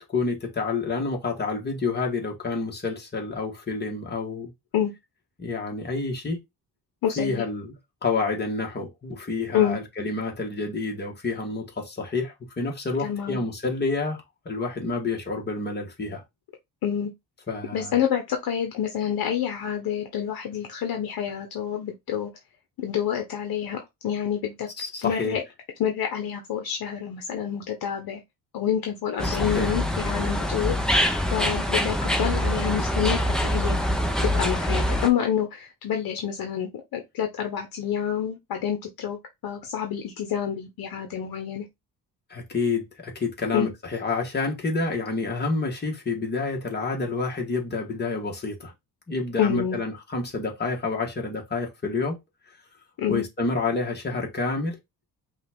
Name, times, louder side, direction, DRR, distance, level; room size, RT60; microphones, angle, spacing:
voice 1, 0.1-4.5 5.4-6.4 7.2-7.8 8.0-16.2 17.5-18.0 24.8-25.4 29.2-29.8 42.3-48.7 49.1-52.2 53.1-54.8, left 3 dB, 25° left, 1.5 m, -29 dB
voice 2, 7.0-7.4 9.5-9.8 13.0-13.4 16.8-17.1 17.7-22.3 22.8-24.7 25.0-25.4 25.8-28.2 28.5-30.7 31.3-33.8 34.2-39.2 39.4-41.6 43.5-43.7 49.4-49.8 53.0-53.2, left 9 dB, 65° left, 1.0 m, -27 dB
sound 1, 29.2-35.1, equal, ahead, 0.6 m, -24 dB
5.5 x 2.5 x 3.5 m
cardioid pair, 140°, 38 cm